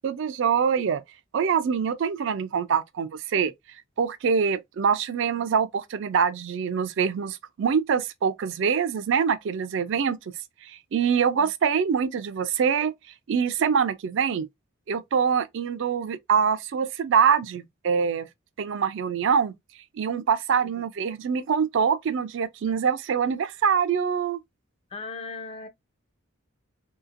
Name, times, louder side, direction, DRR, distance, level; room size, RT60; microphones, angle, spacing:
voice 1, 0.0-1.0 1.3-3.5 4.0-10.2 10.6-12.9 13.3-14.5 14.9-18.3 18.6-19.5 20.0-24.4, right 6 dB, 60° right, 0.4 m, -24 dB
voice 2, 24.9-25.7, left 4 dB, 30° left, 0.4 m, -38 dB
2.8 x 2.8 x 2.4 m
head